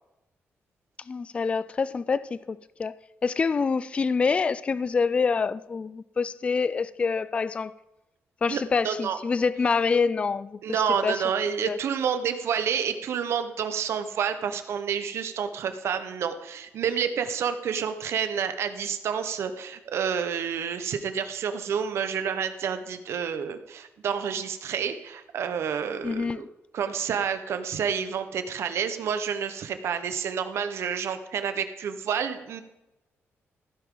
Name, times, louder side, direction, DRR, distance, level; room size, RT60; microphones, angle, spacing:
voice 1, 1.1-7.7 8.4-11.3 11.7-11.8 26.0-26.4, left 5 dB, 25° left, 0.3 m, -26 dB
voice 2, 8.5-9.2 10.6-26.5 26.7-32.6, right 7 dB, 70° right, 1.1 m, -29 dB
15.5 x 9.9 x 3.8 m
wide cardioid pair, 160°, 5 cm